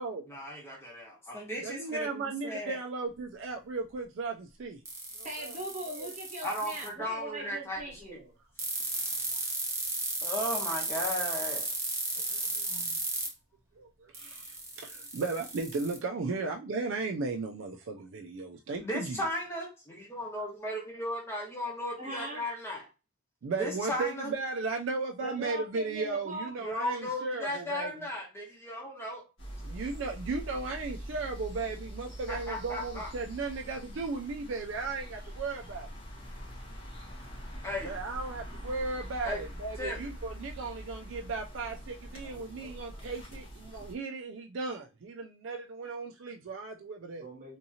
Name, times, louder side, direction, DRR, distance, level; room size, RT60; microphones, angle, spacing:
voice 1, 0.3-2.8 6.4-8.2 10.2-11.7 18.8-22.9 23.5-24.3 26.6-29.2 32.3-33.1 37.6-38.0 39.2-39.4 39.8-40.0 42.2-43.0, left 1 dB, 10° left, 1.0 m, -36 dB
voice 2, 1.6-4.8 5.1-5.5 6.0-6.1 12.2-13.0 13.8-19.2 23.4-28.0 29.6-35.9 37.8-47.2, right 3 dB, 65° right, 0.4 m, -36 dB
sound 1, 4.9-6.9 8.6-13.3 14.1-16.0, right 3 dB, 15° right, 0.7 m, -34 dB
voice 3, 5.2-8.3 22.0-22.4 25.2-26.5 47.2-47.6, right 1 dB, 35° right, 1.1 m, -40 dB
sound 2, 29.4-43.9, equal, 60° left, 1.6 m, -44 dB
3.6 x 2.7 x 2.8 m
head